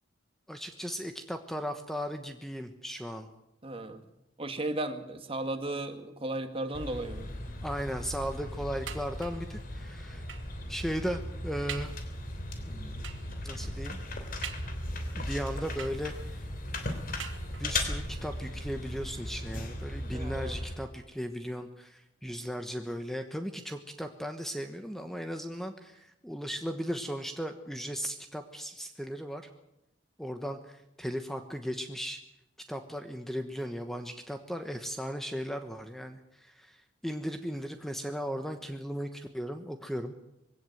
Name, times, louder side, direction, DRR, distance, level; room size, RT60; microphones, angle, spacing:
voice 1, 0.5-3.3 7.6-10.3 10.7-11.9 12.7-13.0 13.4-14.0 15.1-16.4 17.6-29.4 30.2-32.2 32.7-40.3, equal, ahead, 6 dB, 1.1 m, -37 dB
voice 2, 3.6-4.0 4.4-7.3 20.1-20.6, right 2 dB, 30° right, 7 dB, 2.0 m, -35 dB
sound 1, 6.7-20.8, left 1 dB, 50° left, 3.2 m, -37 dB
sound 2, 8.9-9.5 10.3-10.6 11.1-11.2 11.7-12.1 13.0-13.4 14.4-15.1 15.8-16.4 17.2-17.9 18.7-18.8 19.1-19.2, right 8 dB, 85° right, 2.3 m, -44 dB
22.0 x 17.0 x 8.0 m, 0.86 s
head